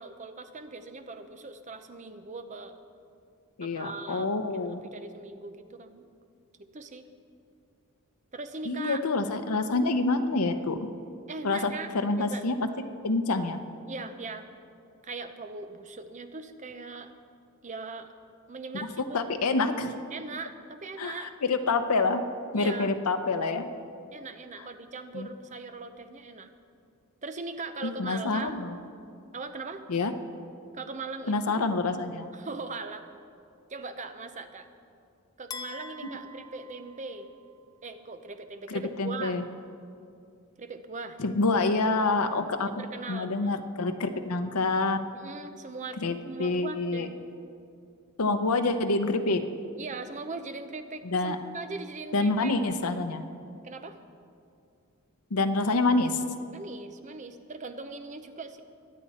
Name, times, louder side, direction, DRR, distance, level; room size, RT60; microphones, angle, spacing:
voice 1, 0.0-2.7 3.6-6.0 6.6-7.0 8.3-9.0 11.3-11.9 12.2-12.4 13.9-14.5 15.0-17.1 17.6-18.1 18.5-19.3 20.1-21.3 22.5-22.9 24.1-26.5 27.2-28.6 29.3-29.8 30.7-31.6 32.3-33.1 33.7-34.7 35.4-37.3 37.8-39.4 40.6-41.2 42.7-43.6 45.1-46.0 46.2-47.1 49.8-52.5 53.6-54.0 56.5-58.6, right 3 dB, 35° right, 9 dB, 0.7 m, -40 dB
voice 2, 3.6-4.8 8.6-10.9 11.4-11.7 12.0-12.6 13.0-13.6 19.1-19.9 21.0-22.2 22.5-23.7 25.1-25.3 27.8-28.8 29.9-30.1 31.3-32.3 38.7-39.4 41.2-45.0 46.0-47.1 48.2-49.4 51.0-51.4 52.1-53.2 55.3-56.2, left 3 dB, 85° left, 7 dB, 0.8 m, -27 dB
sound 1, 35.5-37.6, left 3 dB, 15° left, 0.5 m, -44 dB
23.0 x 8.5 x 4.3 m, 2.4 s
head